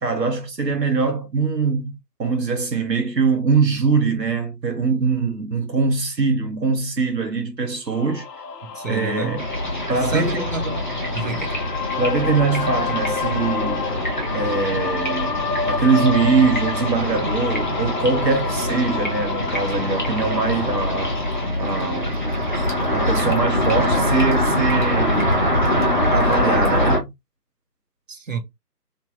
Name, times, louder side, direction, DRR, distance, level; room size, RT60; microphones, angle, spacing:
voice 1, 0.0-1.9 2.2-8.3 8.9-9.5 9.9-10.4 12.0-13.8 14.3-15.4 15.7-21.2 21.6-22.2 22.5-25.4 26.1-27.1, right 4 dB, 85° right, 1.1 m, -22 dB
sound 1, 7.9-21.5, left 5 dB, 80° left, 0.7 m, -30 dB
voice 2, 8.6-9.4 10.1-10.8 11.1-11.5 28.1-28.4, right 3 dB, 55° right, 0.8 m, -29 dB
sound 2, 9.4-27.0, left 1 dB, 30° left, 0.6 m, -23 dB
3.2 x 2.3 x 2.6 m
figure-of-eight pair, 155°, 48 cm